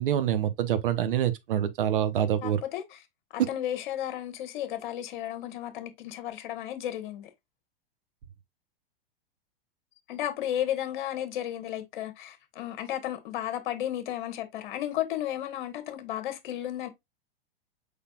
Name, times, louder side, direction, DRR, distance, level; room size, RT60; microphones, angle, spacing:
voice 1, 0.0-2.6 3.4-3.5, right 10 dB, 60° right, 0.9 m, -26 dB
voice 2, 2.4-3.0 3.3-7.3 10.1-16.9, left 11 dB, 55° left, 1.2 m, -33 dB
5.2 x 4.1 x 2.3 m
figure-of-eight pair, 100°, 29 cm